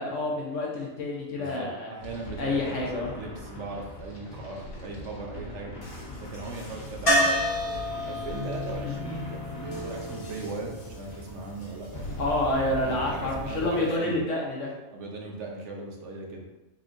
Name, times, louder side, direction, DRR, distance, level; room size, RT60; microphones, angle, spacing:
voice 1, 0.0-1.9 2.4-3.1 8.8-8.9 12.2-14.7, left 2 dB, 65° left, -2 dB, 1.1 m, -28 dB
voice 2, 1.4-5.7 6.2-7.4 8.0-12.1 12.8-14.2 14.9-16.4, right 3 dB, 65° right, 0 dB, 1.0 m, -38 dB
sound 1, 2.0-13.7, left 1 dB, 80° left, 1.5 m, -41 dB
sound 2, 7.1-10.9 13.6-13.7 13.9-14.0, equal, 25° left, 1.5 m, -28 dB
sound 3, 7.6-12.5, left 1 dB, 30° right, 0.5 m, -40 dB
4.4 x 4.0 x 2.6 m, 1.0 s
omnidirectional pair, 1.4 m